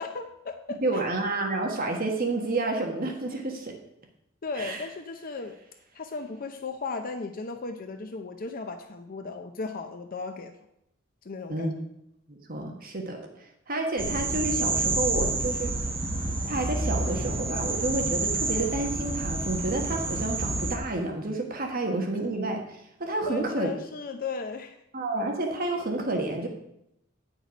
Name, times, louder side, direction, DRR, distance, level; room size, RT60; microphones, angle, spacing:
voice 1, 0.0-1.0 4.4-5.6 5.9-10.6 11.2-11.7 23.3-24.8, left 4 dB, 45° left, 6 dB, 0.6 m, -36 dB
voice 2, 0.8-3.8 4.6-4.8 11.5-11.8 12.3-13.3 13.7-15.7 16.5-23.8 24.9-26.5, right 2 dB, 45° right, 2 dB, 1.3 m, -30 dB
sound 1, 14.0-20.8, right 3 dB, 25° right, 1.2 m, -29 dB
9.6 x 6.1 x 5.2 m, 0.79 s
head